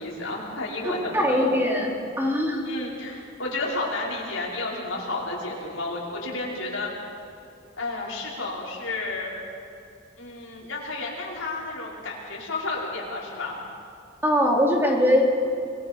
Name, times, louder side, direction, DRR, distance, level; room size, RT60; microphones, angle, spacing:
voice 1, 0.0-1.5 2.6-6.9 7.8-9.4 10.2-13.6, left 2 dB, 90° left, -4 dB, 5.5 m, -31 dB
voice 2, 1.1-2.6 14.2-15.2, equal, 10° right, -1 dB, 3.1 m, -21 dB
26.5 x 22.0 x 5.4 m, 2.5 s
head